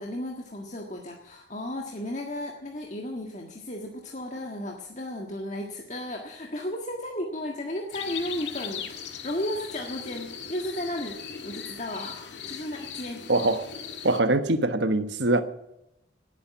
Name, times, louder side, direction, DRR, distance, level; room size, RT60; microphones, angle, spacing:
voice 1, 0.0-13.3, left 1 dB, 40° left, 1.7 m, -34 dB
sound 1, 7.9-14.2, left 7 dB, 75° left, 1.8 m, -39 dB
voice 2, 13.3-13.7 14.0-15.4, right 2 dB, 75° right, 1.3 m, -23 dB
18.5 x 9.2 x 7.1 m
head